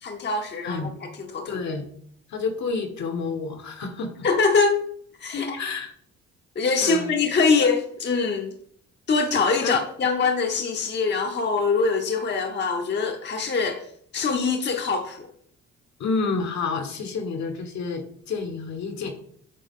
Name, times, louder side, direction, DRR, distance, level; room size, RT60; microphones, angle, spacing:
voice 1, 0.0-1.6 4.2-4.8 5.2-5.6 6.6-8.5 9.1-13.9 14.1-15.3, left 4 dB, 35° left, 3 dB, 0.9 m, -23 dB
voice 2, 1.5-1.8 2.3-4.3 5.3-5.9 6.8-7.1 9.6-9.8 16.0-19.1, left 4 dB, 65° left, 5 dB, 1.4 m, -29 dB
8.3 x 3.5 x 3.7 m, 0.63 s
cardioid pair, 90°, 30 cm